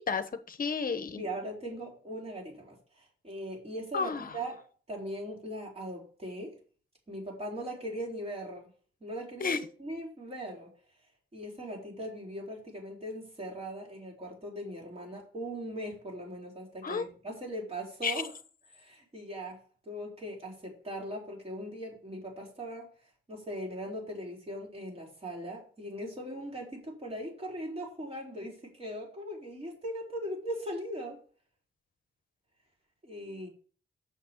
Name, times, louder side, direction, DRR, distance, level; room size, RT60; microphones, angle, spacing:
voice 1, 0.0-1.2 3.9-4.3 9.4-9.6 16.8-17.0 18.0-18.1, left 5 dB, 45° left, 1.0 m, -31 dB
voice 2, 1.2-4.6 4.9-6.6 7.1-8.7 9.0-10.7 11.3-18.3 18.7-22.9 23.3-31.2 33.0-33.5, equal, 30° right, 4.0 m, -39 dB
7.2 x 6.0 x 7.1 m
wide cardioid pair, 140°, 20 cm